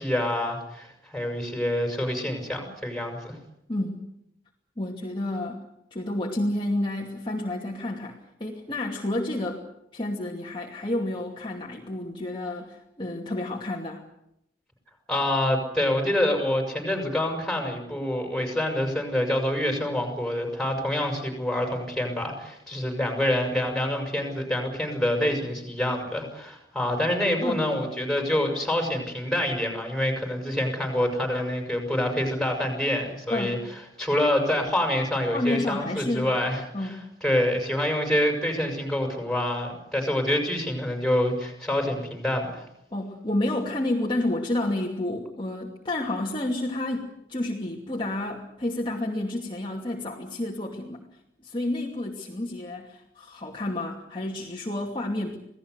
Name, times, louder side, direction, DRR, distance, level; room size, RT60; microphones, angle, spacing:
voice 1, 0.0-3.4 15.1-42.7, left 1 dB, 5° left, 3 dB, 6.6 m, -26 dB
voice 2, 4.8-5.6 5.9-9.6 9.9-14.0 27.4-27.7 33.3-33.6 35.3-36.3 36.7-37.0 42.9-51.0 51.4-55.4, left 1 dB, 30° left, -1 dB, 2.6 m, -30 dB
27.5 x 18.0 x 8.2 m, 0.79 s
head